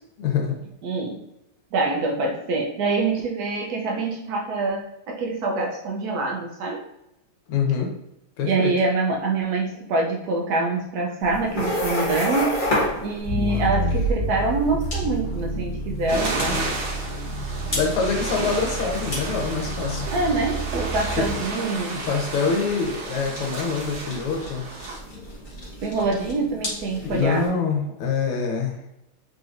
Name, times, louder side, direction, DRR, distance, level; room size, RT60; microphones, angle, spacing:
voice 1, 0.2-0.5 7.5-7.9 8.4-8.7 17.7-20.1 21.2-21.4 22.0-24.7 27.0-28.8, left 5 dB, 85° left, 1 dB, 1.8 m, -25 dB
voice 2, 0.8-1.2 1.7-6.8 8.4-12.6 13.0-16.6 20.1-22.0 25.8-27.6, right 3 dB, 85° right, 0 dB, 0.8 m, -25 dB
sound 1, 11.2-27.5, left 1 dB, 30° left, 1.0 m, -32 dB
sound 2, 13.2-21.3, right 1 dB, 65° left, 0.6 m, -29 dB
sound 3, 16.1-25.0, right 3 dB, 60° right, 1.5 m, -32 dB
4.2 x 3.8 x 2.5 m, 0.86 s
omnidirectional pair, 2.4 m